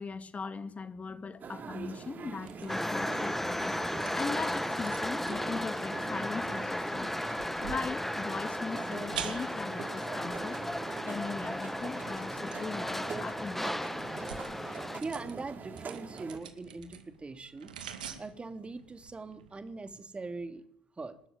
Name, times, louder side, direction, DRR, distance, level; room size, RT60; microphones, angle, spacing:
voice 1, 0.0-3.8 4.1-7.2 7.6-10.6 11.1-13.7, left 4 dB, 30° left, 2.5 m, -39 dB
sound 1, 1.4-16.4, right 5 dB, 40° right, 3.2 m, -44 dB
sound 2, 1.4-19.9, right 8 dB, 80° right, 2.2 m, -49 dB
sound 3, 2.7-15.0, left 1 dB, 5° left, 1.1 m, -35 dB
voice 2, 14.7-20.6 21.0-21.2, right 3 dB, 25° right, 3.2 m, -42 dB
27.0 x 13.0 x 9.1 m
figure-of-eight pair, 50°, 5 cm